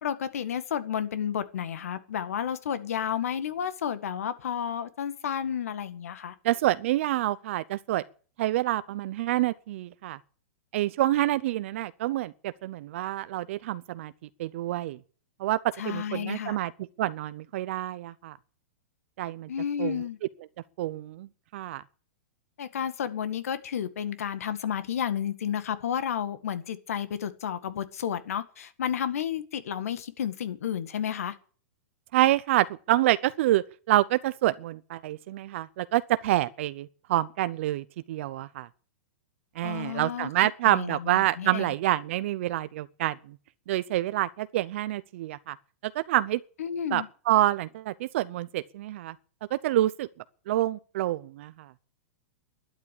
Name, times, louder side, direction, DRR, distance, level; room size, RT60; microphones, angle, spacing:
voice 1, 0.0-6.4 15.8-16.6 19.5-20.2 22.6-31.3 39.6-40.3 40.7-41.7 46.6-47.1, left 8 dB, 80° left, 1.9 m, -31 dB
voice 2, 6.4-8.0 8.4-10.2 10.7-14.1 14.4-15.0 15.4-15.6 15.8-16.7 17.0-18.4 19.2-19.5 19.8-20.0 20.8-21.8 32.1-38.7 39.6-43.2 43.7-45.6 45.9-46.4 46.9-49.1 49.5-50.1 50.5-51.7, right 15 dB, 60° right, 0.7 m, -27 dB
12.0 x 9.6 x 10.0 m
hypercardioid pair, 145°, 8 cm